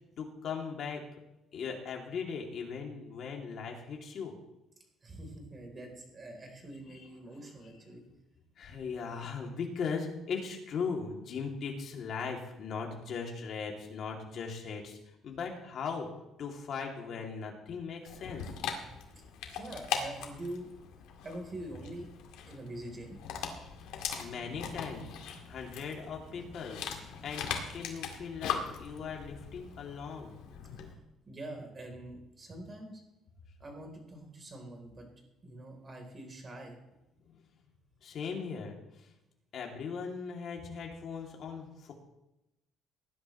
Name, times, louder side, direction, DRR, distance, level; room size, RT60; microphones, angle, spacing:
voice 1, 0.2-1.1 1.5-4.3 6.9-7.1 8.6-15.0 15.2-16.1 16.4-18.5 24.2-25.2 25.5-26.8 27.2-30.4 37.2-37.3 38.0-39.1 39.5-41.9, left 5 dB, 50° left, 1 dB, 2.6 m, -39 dB
voice 2, 5.0-8.0 18.9-19.2 19.5-20.7 21.2-22.1 22.5-23.2 31.3-33.0 33.6-35.1 35.4-36.8, right 1 dB, 25° right, 2 dB, 3.6 m, -44 dB
Dog, 18.1-30.9, left 7 dB, 85° left, 2.1 m, -40 dB
19.0 x 11.0 x 3.2 m, 0.93 s
cardioid pair, 140°, 0 cm